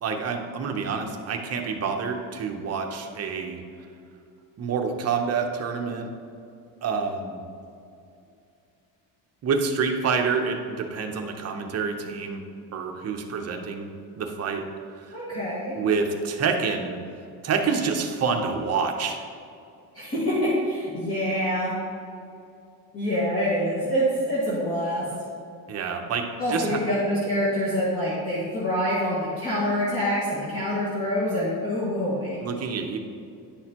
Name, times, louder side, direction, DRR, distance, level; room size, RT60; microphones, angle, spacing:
voice 1, 0.0-3.6 4.6-6.1 6.8-7.4 9.4-12.4 12.7-13.9 14.2-14.6 15.0-15.2 15.7-17.0 17.4-19.2 25.7-26.8 32.4-33.0, right 5 dB, 35° right, 3 dB, 0.8 m, -27 dB
voice 2, 15.1-15.8 19.9-21.8 22.9-25.1 26.4-32.4, equal, 30° left, -9 dB, 1.9 m, -26 dB
9.9 x 6.3 x 2.9 m, 2.5 s
cardioid pair, 140°, 44 cm